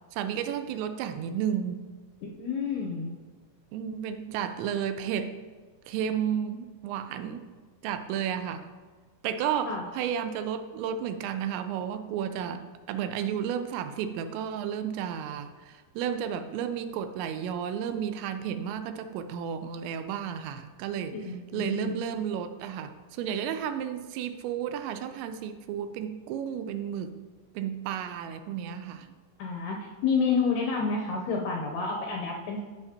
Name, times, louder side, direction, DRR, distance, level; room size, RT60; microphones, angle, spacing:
voice 1, 0.1-1.9 3.7-5.4 5.9-7.5 7.8-8.6 9.2-21.2 21.5-27.2 27.6-29.1, right 8 dB, 85° right, 10 dB, 2.8 m, -32 dB
voice 2, 2.2-3.1 9.7-9.8 21.1-22.0 29.4-32.6, left 5 dB, 80° left, 1 dB, 2.3 m, -29 dB
14.5 x 5.8 x 2.8 m, 1.5 s
omnidirectional pair, 5.2 m